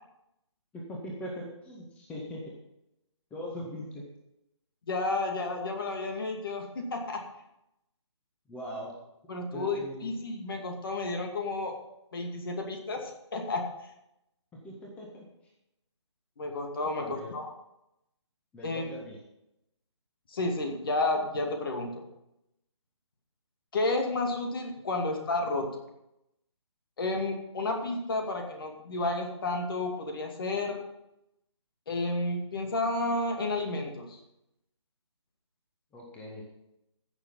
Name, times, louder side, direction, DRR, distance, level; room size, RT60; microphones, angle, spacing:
voice 1, 0.7-2.4 3.3-4.0 8.5-8.9 9.3-10.2 14.5-15.2 16.9-17.3 18.5-19.2 35.9-36.4, equal, 10° left, -2 dB, 1.7 m, -41 dB
voice 2, 4.9-7.2 9.3-11.7 12.1-13.6 16.4-17.5 18.6-18.8 20.3-22.0 23.7-25.8 27.0-30.8 31.9-34.2, left 2 dB, 50° left, 3 dB, 2.4 m, -31 dB
15.5 x 6.9 x 5.5 m, 0.84 s
figure-of-eight pair, 145°, 16 cm